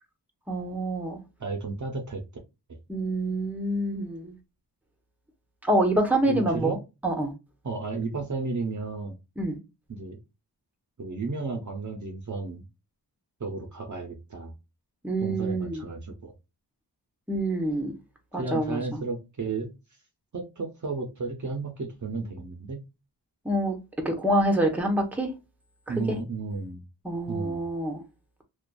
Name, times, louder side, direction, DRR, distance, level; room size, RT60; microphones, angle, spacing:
voice 1, 0.5-1.2 2.9-4.3 5.6-6.8 7.0-7.3 9.4-9.6 15.0-15.9 17.3-17.9 18.3-19.0 23.4-23.8 24.0-25.3 26.1-26.2 27.0-28.0, right 1 dB, 5° right, 0.8 m, -26 dB
voice 2, 1.4-2.2 6.3-6.8 7.6-9.2 9.9-10.2 11.0-12.6 13.4-14.5 15.2-16.3 18.3-19.7 20.3-22.8 25.9-26.8 27.3-27.6, right 3 dB, 45° right, 0.7 m, -33 dB
2.5 x 2.4 x 2.2 m
cardioid pair, 50°, 41 cm